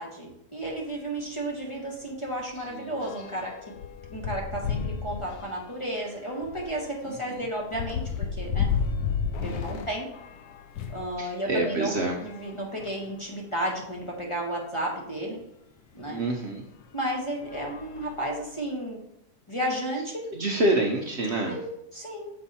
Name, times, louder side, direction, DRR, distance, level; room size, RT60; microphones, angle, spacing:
voice 1, 0.0-3.5 4.1-8.7 9.4-10.1 10.9-11.9 12.2-15.4 15.9-16.2 16.9-19.0 19.5-20.2 21.4-22.3, right 1 dB, 20° left, -2 dB, 1.3 m, -33 dB
sound 1, 0.6-0.8 1.2-1.3 1.6-11.1 11.8-13.2 13.9-14.0 14.2-14.3 16.0-16.1 16.7-17.0 17.4-18.7, left 6 dB, 80° left, 1.2 m, -34 dB
voice 2, 2.6-3.1 7.0-7.4 9.4-9.8 11.2-12.2 16.1-16.6 20.3-21.6, right 2 dB, 50° right, 1 dB, 1.0 m, -28 dB
6.9 x 5.3 x 4.2 m, 0.76 s
omnidirectional pair, 1.6 m